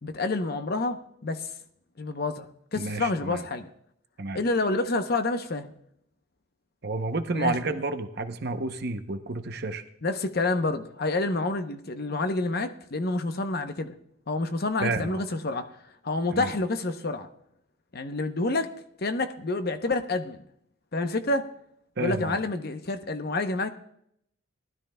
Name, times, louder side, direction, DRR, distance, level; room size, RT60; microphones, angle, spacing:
voice 1, 0.0-1.5 2.0-3.7 4.3-5.7 7.3-7.8 10.0-13.9 14.3-15.7 16.0-17.3 17.9-18.7 19.0-20.4 20.9-21.5 22.0-23.7, left 2 dB, 45° left, 8 dB, 0.7 m, -28 dB
voice 2, 2.8-3.4 4.2-4.4 6.8-9.8 14.8-15.2 16.3-16.5 22.0-22.4, right 3 dB, 50° right, 8 dB, 0.7 m, -30 dB
19.0 x 12.5 x 2.2 m, 0.74 s
head